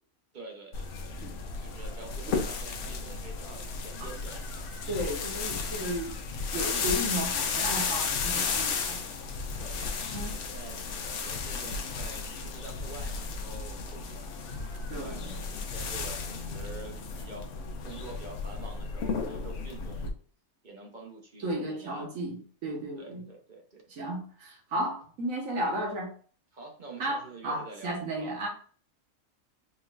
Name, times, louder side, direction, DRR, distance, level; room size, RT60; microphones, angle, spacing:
voice 1, 0.3-1.1 1.4-4.4 6.3-6.5 9.6-14.3 14.9-17.5 17.8-20.1 20.6-22.1 23.0-23.8 26.5-28.3, right 3 dB, 40° right, 0.8 m, -47 dB
sound 1, 0.7-20.1, left 5 dB, 65° left, 1.0 m, -34 dB
voice 2, 4.9-6.2 6.5-9.1 10.1-10.4 14.9-15.4 21.4-23.2 23.9-26.1 27.0-28.5, right 1 dB, 75° right, 1.5 m, -34 dB
4.4 x 3.1 x 2.4 m
omnidirectional pair, 1.4 m